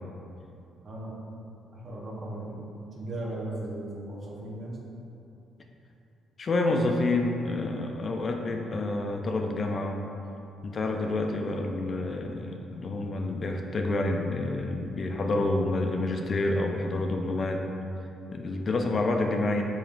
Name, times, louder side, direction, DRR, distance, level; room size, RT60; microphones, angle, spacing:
voice 1, 0.8-1.2 1.7-4.8, right 1 dB, 45° right, -4 dB, 0.8 m, -37 dB
voice 2, 6.4-10.0 10.6-17.6 18.3-19.6, left 2 dB, 45° left, 2 dB, 0.3 m, -28 dB
5.1 x 2.9 x 2.4 m, 2.7 s
cardioid pair, 90°, 0 cm